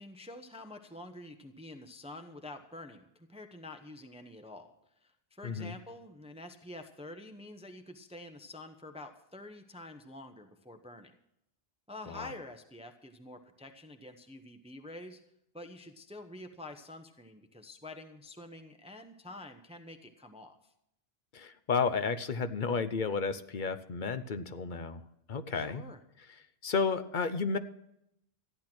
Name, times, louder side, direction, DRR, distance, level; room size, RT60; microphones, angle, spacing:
voice 1, 0.0-4.7 5.0-11.1 11.9-15.2 15.5-20.7 25.5-26.0, left 2 dB, 5° right, 6 dB, 0.8 m, -47 dB
voice 2, 21.3-25.0 25.3-25.8 26.6-27.6, left 5 dB, 50° left, 11 dB, 0.9 m, -32 dB
14.0 x 10.5 x 6.1 m, 0.79 s
omnidirectional pair, 1.1 m